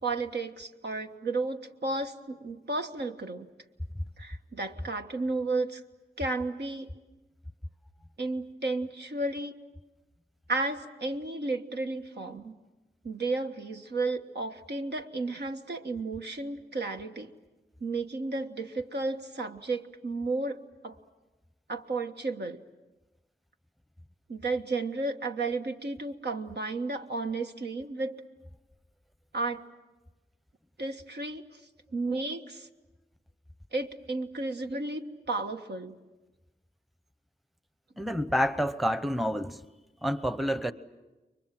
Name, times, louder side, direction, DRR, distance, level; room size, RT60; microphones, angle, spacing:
voice 1, 0.0-3.5 4.2-5.8 6.2-6.9 8.2-9.5 10.5-12.5 13.0-17.3 17.8-21.0 21.7-22.6 24.3-28.1 29.3-29.6 30.8-31.6 31.9-32.7 33.7-35.9, right 3 dB, 75° right, 1.5 m, -33 dB
voice 2, 38.0-39.6 40.0-40.7, equal, ahead, 0.8 m, -28 dB
29.5 x 23.5 x 7.6 m
wide cardioid pair, 60°, 18 cm